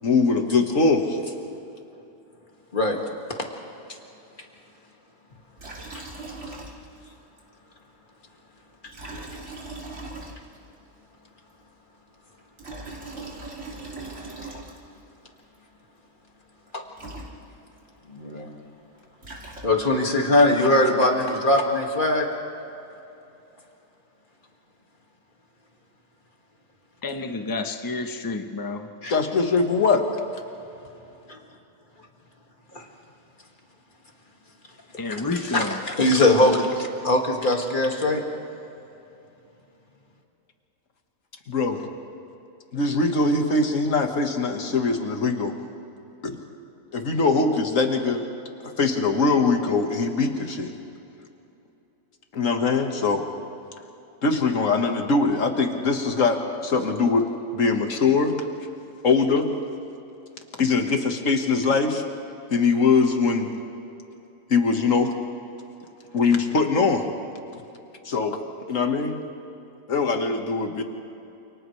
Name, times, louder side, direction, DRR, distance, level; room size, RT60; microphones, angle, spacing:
voice 1, 0.0-1.2 29.1-30.1 41.5-41.9 42.7-45.6 46.2-46.4 46.9-48.2 48.6-50.7 52.3-53.3 54.2-57.3 57.5-58.4 59.0-59.5 60.6-62.0 62.5-63.5 64.5-65.1 66.1-67.1 68.0-68.4 68.7-69.2 69.9-70.8, left 4 dB, 65° left, 2.0 m, -22 dB
Liquid, 5.6-7.1 7.4-7.5 8.8-10.8 12.4-15.0 16.7-16.8 17.0-17.8 18.9-20.1, right 2 dB, 55° right, 3.0 m, -39 dB
voice 2, 18.1-18.5 19.6-22.3 29.0-29.1 31.3-31.4 32.7-32.8 35.1-35.2 35.5-38.2, left 1 dB, 35° left, 2.3 m, -21 dB
voice 3, 27.0-28.9 35.0-35.9, left 3 dB, 15° left, 1.0 m, -30 dB
29.0 x 28.0 x 3.3 m
omnidirectional pair, 1.5 m